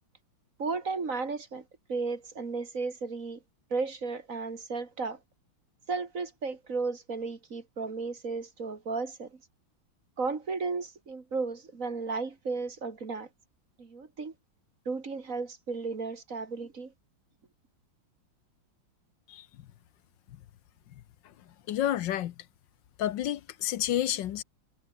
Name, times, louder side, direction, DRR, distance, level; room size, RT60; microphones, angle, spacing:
voice 1, 0.6-1.6 1.9-3.4 3.7-5.2 5.9-9.4 10.2-13.3 13.8-14.3 14.9-16.9, right 4 dB, 40° right, 2.4 m, -34 dB
voice 2, 21.7-22.3 23.0-24.4, left 12 dB, 70° left, 1.4 m, -29 dB
omnidirectional pair, 2.2 m